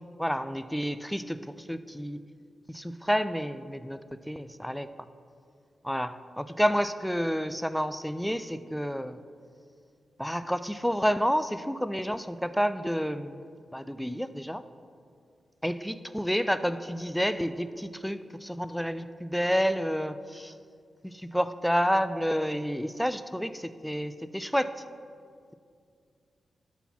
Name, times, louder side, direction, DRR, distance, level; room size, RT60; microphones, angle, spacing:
voice 1, 0.0-2.2 2.7-4.0 4.3-4.9 5.8-9.2 10.2-13.5 13.7-14.6 15.6-20.5 21.0-24.8, equal, ahead, 13 dB, 0.4 m, -29 dB
11.0 x 4.1 x 5.9 m, 2.3 s
cardioid pair, 60°, 0 cm